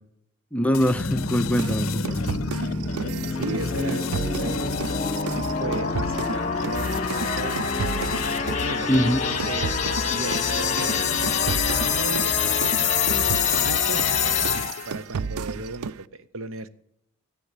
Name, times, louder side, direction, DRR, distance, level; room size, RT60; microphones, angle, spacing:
voice 1, 0.5-2.3 8.9-9.2, equal, 5° left, 0.5 m, -23 dB
sound 1, 0.7-15.0, left 6 dB, 70° left, 0.5 m, -34 dB
sound 2, 0.9-14.9, left 5 dB, 30° left, 1.3 m, -26 dB
sound 3, 1.6-8.7 8.9-16.0, right 5 dB, 90° right, 0.5 m, -33 dB
voice 2, 3.0-4.8 5.3-7.6 8.6-14.2 14.9-16.7, right 3 dB, 65° right, 0.8 m, -36 dB
13.5 x 8.6 x 8.2 m
head